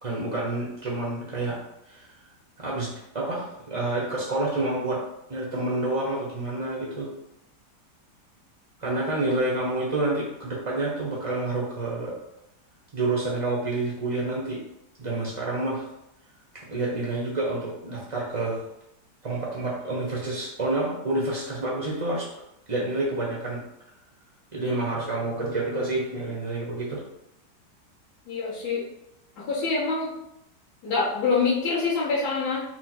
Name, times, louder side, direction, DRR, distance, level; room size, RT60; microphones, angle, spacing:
voice 1, 0.0-1.6 1.9-2.1 2.6-5.0 5.3-7.1 8.8-12.1 12.9-14.6 15.0-15.9 16.7-18.7 19.2-22.3 22.7-23.6 24.5-27.0, right 2 dB, 35° right, -4 dB, 0.5 m, -28 dB
voice 2, 28.3-28.9 29.4-30.1 30.8-32.6, left 4 dB, 65° left, -12 dB, 1.7 m, -25 dB
4.4 x 2.1 x 4.4 m, 0.82 s
omnidirectional pair, 1.9 m